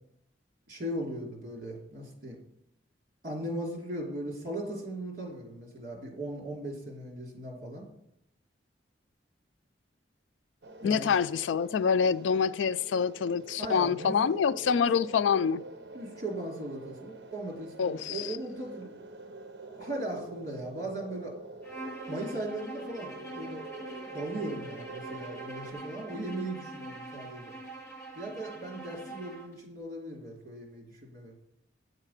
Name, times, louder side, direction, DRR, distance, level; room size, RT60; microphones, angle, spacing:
voice 1, 0.7-2.4 3.2-7.9 10.8-11.2 13.6-14.2 14.7-14.9 15.9-19.0 19.7-21.3 22.1-23.7 24.0-27.5 28.1-31.3, right 1 dB, 45° right, 2.8 m, -38 dB
sound 1, 10.6-25.7, right 2 dB, 60° right, 0.7 m, -46 dB
voice 2, 10.8-15.6 17.8-18.4, left 6 dB, 80° left, 0.3 m, -26 dB
Bowed string instrument, 21.6-29.5, right 2 dB, 15° left, 2.0 m, -44 dB
8.9 x 6.6 x 5.7 m
head